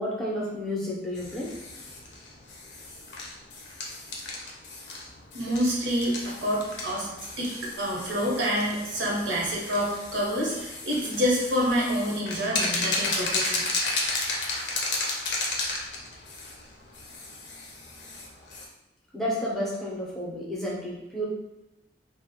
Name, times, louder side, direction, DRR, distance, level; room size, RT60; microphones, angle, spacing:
voice 1, 0.0-1.6 19.1-21.3, equal, ahead, -6 dB, 0.6 m, -31 dB
sound 1, 1.1-18.7, left 2 dB, 65° left, 0.5 m, -34 dB
voice 2, 5.3-7.1 7.4-13.7, equal, 80° right, -4 dB, 0.8 m, -27 dB
2.4 x 2.0 x 2.7 m, 0.95 s
head